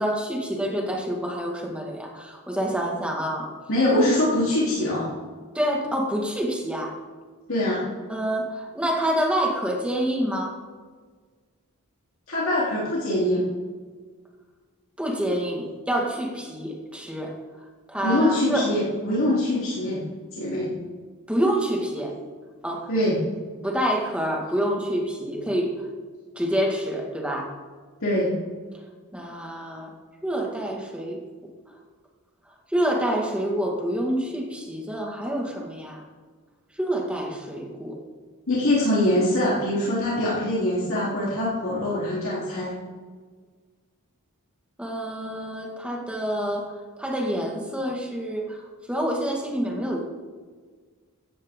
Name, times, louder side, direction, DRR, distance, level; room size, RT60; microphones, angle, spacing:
voice 1, 0.0-3.5 5.6-6.9 8.1-10.5 15.0-17.3 17.9-18.6 21.3-22.1 22.6-22.9 23.6-25.7 26.4-27.5 29.1-29.9 30.2-31.2 32.7-36.0 36.8-38.0 44.8-46.7 47.0-48.6 48.9-50.0, equal, 5° right, 0 dB, 2.0 m, -27 dB
voice 2, 3.7-5.1 7.5-7.8 12.3-13.4 18.0-20.0 20.4-20.7 22.9-23.2 28.0-28.3 38.5-42.7, left 1 dB, 65° left, -8 dB, 3.6 m, -23 dB
15.5 x 13.5 x 3.8 m, 1.5 s
head